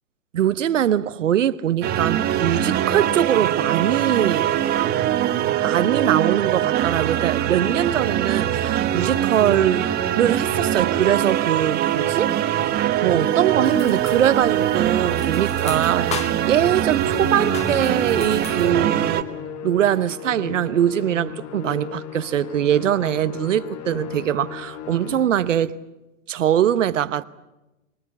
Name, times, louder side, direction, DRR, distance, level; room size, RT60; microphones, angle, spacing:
voice 1, 0.3-4.5 5.6-9.9 10.2-12.6 13.0-19.3 19.6-25.8 26.3-27.2, right 10 dB, 65° right, 1.0 m, -22 dB
sound 1, 1.8-19.2, right 11 dB, 25° right, 1.4 m, -22 dB
sound 2, 13.6-18.7, left 7 dB, 15° left, 1.1 m, -37 dB
Musical instrument, 17.1-25.5, left 8 dB, 35° left, 2.3 m, -36 dB
24.5 x 21.0 x 8.2 m
hypercardioid pair, 115°, 40 cm